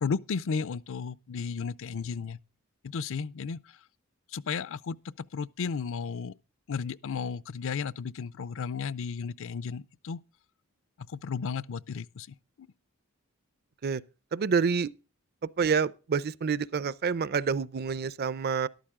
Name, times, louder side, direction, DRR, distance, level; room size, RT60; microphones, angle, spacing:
voice 1, 0.0-2.4 2.8-3.6 4.3-6.3 6.7-10.2 11.0-12.3 12.6-12.7, left 5 dB, 65° left, 0.5 m, -34 dB
voice 2, 14.3-14.9 15.6-18.7, right 5 dB, 50° right, 0.5 m, -28 dB
13.5 x 12.0 x 3.7 m
head